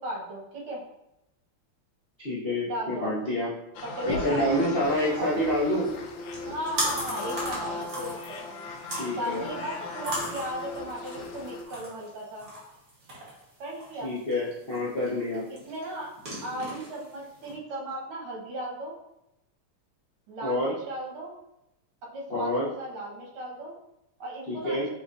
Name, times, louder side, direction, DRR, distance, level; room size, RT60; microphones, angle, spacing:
voice 1, 0.0-0.8 2.6-3.1 3.8-4.7 5.2-5.3 6.5-12.5 13.6-14.1 15.7-16.1 16.4-18.9 20.3-21.3 22.1-23.7 24.2-24.8, right 1 dB, 75° right, -3 dB, 2.0 m, -36 dB
voice 2, 2.2-3.5 4.1-5.9 8.9-9.5 14.0-15.4 20.4-20.7 22.3-22.7 24.5-24.9, left 1 dB, 60° left, -8 dB, 0.6 m, -27 dB
sound 1, 3.7-11.6, left 3 dB, 75° left, 1.2 m, -37 dB
sound 2, 4.8-17.5, equal, 45° right, 1.8 m, -39 dB
5.9 x 3.2 x 2.5 m, 0.89 s
omnidirectional pair, 2.4 m